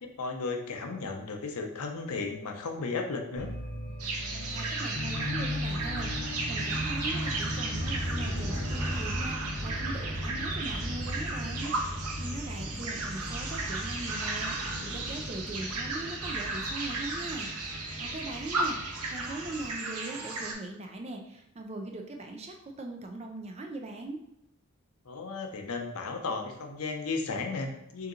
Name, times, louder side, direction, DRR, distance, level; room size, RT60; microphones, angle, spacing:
voice 1, 0.0-3.5 25.1-28.1, left 4 dB, 85° left, 4 dB, 0.6 m, -34 dB
sound 1, 3.4-19.7, equal, 40° left, 0.7 m, -37 dB
sound 2, 4.0-20.5, right 3 dB, 85° right, 0.7 m, -35 dB
voice 2, 4.5-17.5 18.0-24.2, right 2 dB, 30° right, 3 dB, 0.4 m, -40 dB
3.8 x 2.8 x 3.7 m, 0.81 s
head